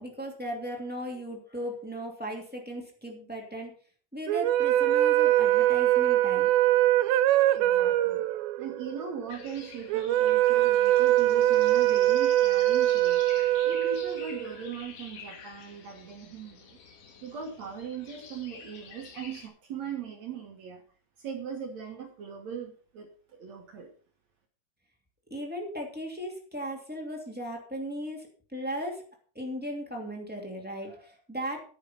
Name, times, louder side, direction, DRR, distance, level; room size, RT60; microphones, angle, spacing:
voice 1, 0.0-3.7 4.1-6.5 25.3-29.0 29.3-31.7, equal, 5° right, 0 dB, 1.3 m, -37 dB
sound 1, 4.3-14.7, right 14 dB, 85° right, 3.0 m, -23 dB
voice 2, 7.5-8.3 8.6-13.2 13.6-16.8 17.2-20.8 21.2-23.9, right 7 dB, 55° right, 3 dB, 2.1 m, -39 dB
sound 2, 9.3-19.5, left 6 dB, 55° left, 2.8 m, -48 dB
9.9 x 9.8 x 5.4 m, 0.42 s
omnidirectional pair, 5.0 m